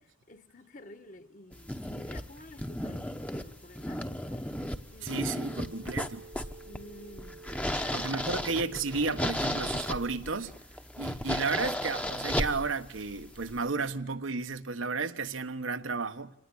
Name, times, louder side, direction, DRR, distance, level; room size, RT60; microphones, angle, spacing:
voice 1, 0.3-4.5 4.9-5.2 5.5-5.8 6.6-8.3, left 2 dB, 40° left, 1.3 m, -51 dB
sound 1, 1.5-13.6, left 1 dB, 5° left, 0.9 m, -35 dB
voice 2, 5.0-6.2 7.9-10.5 11.0-16.3, right 4 dB, 85° right, 1.3 m, -33 dB
Telephone, 5.2-10.2, right 3 dB, 55° right, 1.3 m, -50 dB
26.5 x 19.0 x 9.9 m
head